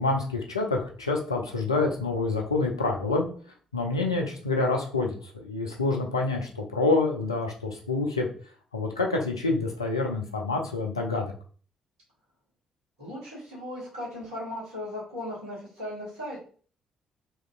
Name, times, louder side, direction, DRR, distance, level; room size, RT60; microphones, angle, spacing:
voice 1, 0.0-3.3 3.7-8.3 8.7-11.3, left 3 dB, 90° left, 1 dB, 0.4 m, -27 dB
voice 2, 13.0-16.4, left 1 dB, 80° right, -7 dB, 1.3 m, -37 dB
2.8 x 2.7 x 2.4 m, 0.43 s
figure-of-eight pair, 40°, 2 cm